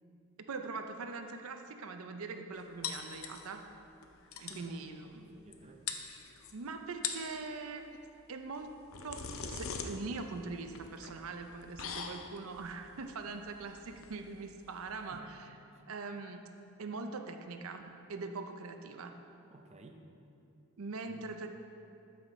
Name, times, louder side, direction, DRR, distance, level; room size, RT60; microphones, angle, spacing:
voice 1, 0.5-3.7 4.4-5.3 6.5-8.0 8.3-8.7 9.0-15.5 15.9-16.5 16.8-19.1 20.8-21.5, right 3 dB, 80° right, 6 dB, 0.6 m, -42 dB
sound 1, 2.8-3.7 4.0-4.1 4.3-4.7 5.5-5.6 5.9-6.5 6.9-7.4 8.5-15.2, left 6 dB, 75° left, 0.7 m, -42 dB
voice 2, 4.5-4.9 5.2-5.8 15.1-15.3 15.7-15.8 19.5-20.0 21.1-21.3, right 2 dB, 30° right, 3 dB, 0.6 m, -54 dB
13.0 x 5.7 x 4.2 m, 2.7 s
head